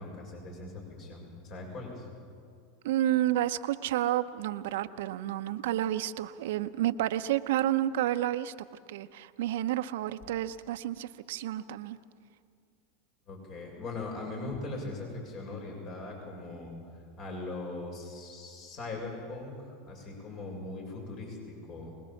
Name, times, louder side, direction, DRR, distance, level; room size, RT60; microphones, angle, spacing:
voice 1, 0.0-2.1 13.3-16.7 17.2-22.0, left 2 dB, 50° left, 0 dB, 6.7 m, -40 dB
voice 2, 2.8-8.5 8.9-12.0, right 13 dB, 70° right, 12 dB, 0.8 m, -30 dB
24.0 x 20.5 x 7.2 m, 2.3 s
hypercardioid pair, 95°, 0 cm